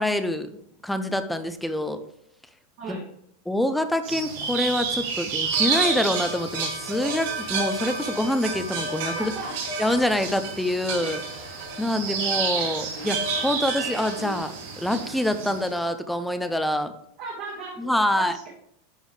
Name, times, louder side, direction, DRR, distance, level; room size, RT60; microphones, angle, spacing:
voice 1, 0.0-2.0 2.9-3.0 3.5-9.3 9.8-17.0 17.8-18.4, left 1 dB, ahead, 10 dB, 0.4 m, -26 dB
sound 1, 4.0-15.7, right 4 dB, 65° right, 2.5 m, -29 dB
voice 2, 9.1-9.6 17.2-18.5, right 4 dB, 40° right, -4 dB, 1.8 m, -36 dB
10.5 x 4.0 x 3.2 m, 0.70 s
supercardioid pair, 170°, 0 cm